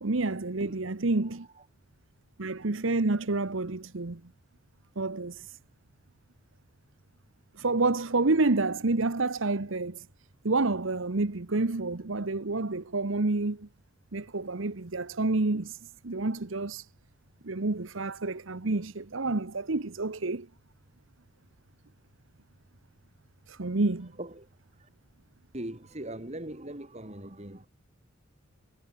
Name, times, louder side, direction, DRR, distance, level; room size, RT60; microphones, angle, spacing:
voice 1, 0.0-1.5 2.4-4.2 5.0-5.6 7.5-10.1 10.4-13.7 14.1-16.9 17.4-20.5 23.5-24.1, right 3 dB, 70° right, 1.1 m, -29 dB
voice 2, 1.2-1.7 24.2-24.9 25.5-27.7, right 1 dB, 35° right, 2.4 m, -41 dB
head